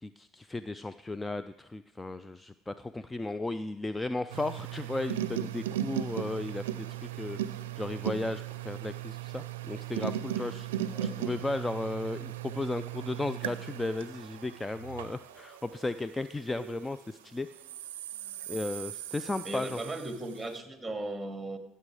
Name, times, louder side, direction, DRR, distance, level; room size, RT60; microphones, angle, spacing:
voice 1, 0.0-17.5 18.5-19.8, left 2 dB, 15° left, 13 dB, 0.4 m, -35 dB
sound 1, 4.3-16.9 17.5-20.4, right 11 dB, 85° right, 0.5 m, -37 dB
voice 2, 10.7-11.2 19.4-21.6, right 2 dB, 10° right, 5 dB, 2.2 m, -37 dB
15.5 x 6.8 x 4.9 m, 0.87 s
hypercardioid pair, 70°, 0 cm